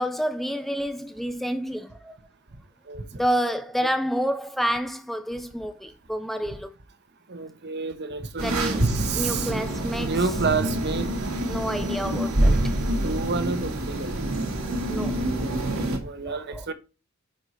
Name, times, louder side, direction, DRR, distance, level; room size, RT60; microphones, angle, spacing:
voice 1, 0.0-2.2 3.2-6.7 8.4-8.9 9.1-10.2 11.4-12.7 14.9-15.2 16.2-16.7, equal, ahead, 0.4 m, -29 dB
voice 2, 2.9-3.2 3.8-3.9 7.3-11.1 13.0-14.2 15.3-16.7, right 4 dB, 50° right, 1.1 m, -30 dB
sound 1, 8.4-16.0, right 1 dB, 70° right, 2.0 m, -26 dB
9.8 x 4.8 x 4.2 m
head